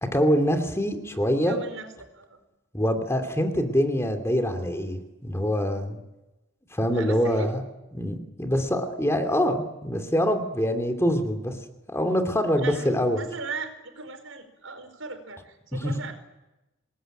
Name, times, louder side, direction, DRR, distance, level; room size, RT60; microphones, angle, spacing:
voice 1, 0.0-1.6 2.7-6.0 6.7-7.6 7.9-11.6 11.9-13.2 15.7-15.9, equal, 15° left, 5 dB, 2.7 m, -25 dB
voice 2, 1.5-2.4 6.9-7.6 12.6-12.9 13.2-13.7 14.0-16.1, right 4 dB, 85° right, 7 dB, 5.0 m, -37 dB
27.0 x 20.5 x 9.2 m, 0.99 s
head